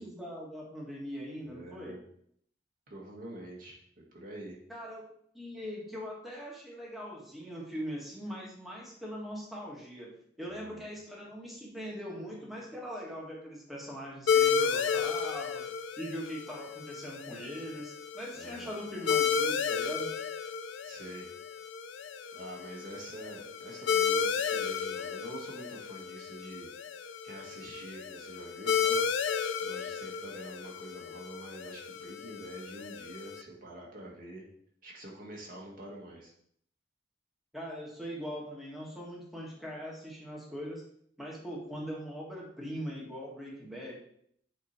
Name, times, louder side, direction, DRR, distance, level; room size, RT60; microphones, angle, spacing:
voice 1, 0.0-2.0 4.7-5.0 5.3-15.7 16.0-20.1 37.5-40.8 41.2-43.9, equal, ahead, -4 dB, 1.5 m, -41 dB
voice 2, 1.4-2.0 2.9-3.8 4.1-4.6 10.5-10.9 18.3-18.7 20.8-21.3 22.3-26.7 27.2-29.1 29.6-34.5 34.8-36.3, right 1 dB, 50° right, -2 dB, 1.7 m, -46 dB
sound 1, 14.3-33.4, left 7 dB, 85° left, 0.4 m, -33 dB
8.1 x 3.1 x 4.2 m, 0.67 s
head